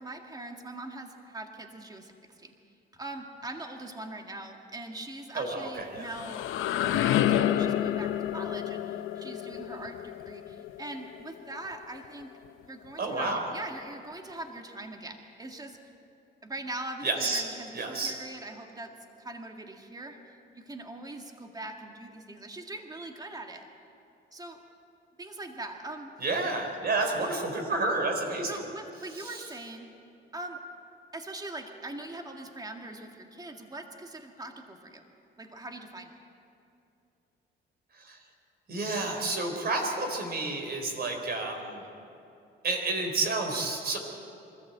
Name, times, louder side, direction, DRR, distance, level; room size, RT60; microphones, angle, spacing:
voice 1, 0.0-2.5 2.9-12.3 12.6-15.8 16.4-18.9 19.2-20.2 20.5-23.7 24.3-24.6 25.2-26.1 28.4-29.9 30.3-30.6 31.1-35.0 35.4-36.2, right 2 dB, 20° right, 3 dB, 1.9 m, -42 dB
voice 2, 5.3-6.1 13.0-13.4 17.0-17.4 17.7-18.2 26.2-28.6 29.2-29.4 38.0-38.2 38.7-41.8 42.6-44.0, right 3 dB, 50° right, 3 dB, 4.1 m, -30 dB
sound 1, 5.8-11.6, left 11 dB, 90° left, 0.8 m, -29 dB
23.5 x 14.0 x 8.0 m, 2.7 s
cardioid pair, 90°, 20 cm